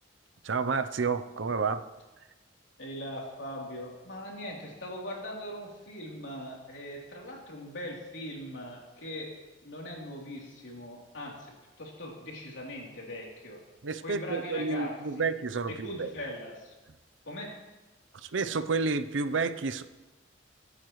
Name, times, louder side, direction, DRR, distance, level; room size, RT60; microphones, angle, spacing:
voice 1, 0.4-1.8 13.8-16.1 18.1-19.8, right 4 dB, 80° right, 11 dB, 0.7 m, -30 dB
voice 2, 2.8-9.3 9.6-11.5 11.8-13.6 14.0-15.3 15.7-16.7 17.2-17.5, left 1 dB, 70° left, -3 dB, 3.4 m, -40 dB
23.0 x 9.0 x 3.2 m, 1.1 s
head